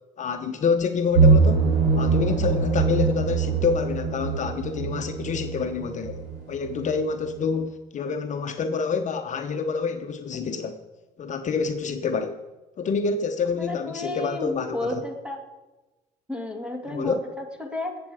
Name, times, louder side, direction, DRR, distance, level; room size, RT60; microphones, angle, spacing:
voice 1, 0.2-1.7 2.0-6.2 6.5-10.8 11.2-12.4 12.8-15.0 16.9-17.2, left 5 dB, 45° left, 6 dB, 0.8 m, -27 dB
sound 1, 1.1-6.9 7.2-7.3, right 4 dB, 90° right, 4.5 m, -23 dB
voice 2, 13.6-15.4 16.3-17.9, left 2 dB, 5° right, 3 dB, 2.1 m, -32 dB
19.0 x 7.7 x 4.9 m, 1.1 s
cardioid pair, 110°, 17 cm